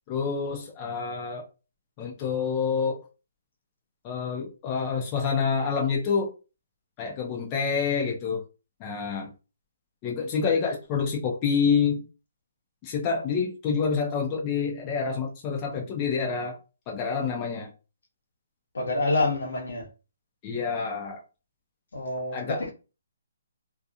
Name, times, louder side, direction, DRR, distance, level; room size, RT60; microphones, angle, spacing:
voice 1, 0.1-1.5 2.0-3.0 4.0-6.3 7.0-8.4 8.8-9.3 10.0-12.0 12.8-16.6 16.9-17.7 20.4-21.2 22.3-22.7, left 5 dB, 25° left, 0.7 m, -27 dB
voice 2, 18.7-19.9 21.9-22.7, left 2 dB, 80° left, 1.1 m, -27 dB
2.8 x 2.4 x 2.4 m
hypercardioid pair, 150°, 0 cm